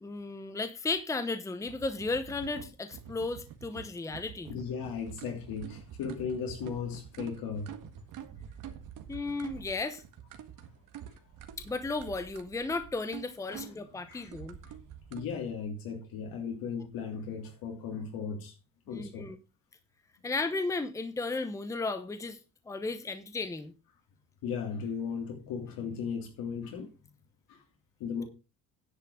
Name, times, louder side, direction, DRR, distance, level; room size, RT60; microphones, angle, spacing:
voice 1, 0.0-4.5 9.1-10.0 11.6-14.6 18.9-19.4 20.2-22.4 22.7-23.7, left 3 dB, 10° left, 0.9 m, -34 dB
sound 1, 1.6-15.2, right 9 dB, 60° right, 1.8 m, -47 dB
voice 2, 4.5-7.7 13.5-14.3 14.6-14.8 15.1-18.5 18.9-19.3 24.4-26.9 27.5-27.6 28.0-28.2, left 6 dB, 80° left, 3.0 m, -37 dB
10.0 x 5.5 x 6.3 m
cardioid pair, 155°, 35 cm